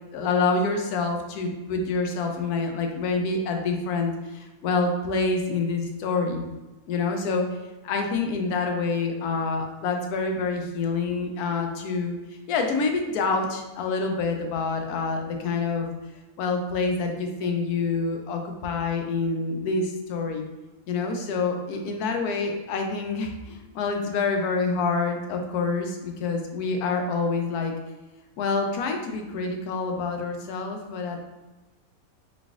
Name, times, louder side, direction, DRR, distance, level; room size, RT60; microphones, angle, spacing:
voice 1, 0.1-6.5 6.9-7.5 7.8-12.1 12.5-15.9 16.4-20.4 20.9-27.7 28.4-31.2, left 4 dB, 90° left, 4 dB, 1.1 m, -27 dB
4.0 x 3.4 x 2.4 m, 1.1 s
omnidirectional pair, 1.5 m